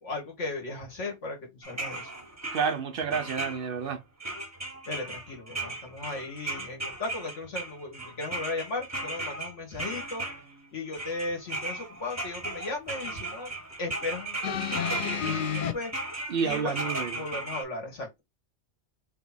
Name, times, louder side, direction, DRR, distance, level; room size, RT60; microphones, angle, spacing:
voice 1, 0.0-2.1 4.9-10.2 10.7-13.5 13.8-15.9 16.4-18.2, left 3 dB, 85° left, 2.0 m, -36 dB
sound 1, 1.6-3.9 4.2-10.7 10.9-17.6, right 2 dB, 15° right, 1.2 m, -36 dB
voice 2, 2.5-4.0 16.3-17.2, right 6 dB, 60° right, 0.7 m, -30 dB
sound 2, 14.4-15.7 16.7-16.8, left 7 dB, 55° left, 0.6 m, -30 dB
3.3 x 3.0 x 4.2 m
omnidirectional pair, 1.2 m